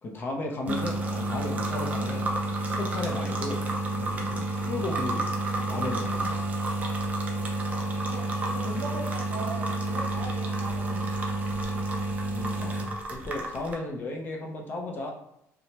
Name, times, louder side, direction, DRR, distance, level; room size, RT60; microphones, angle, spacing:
voice 1, 0.0-2.3 2.8-3.6 4.0-5.3 5.7-6.4 12.3-12.7 13.1-15.1, left 2 dB, 35° left, 1 dB, 0.5 m, -34 dB
sound 1, 0.7-13.7, right 2 dB, 25° right, 0.5 m, -30 dB
voice 2, 8.5-11.0, right 2 dB, 55° right, -1 dB, 0.8 m, -38 dB
2.7 x 2.1 x 2.9 m, 0.79 s
cardioid pair, 145°, 6 cm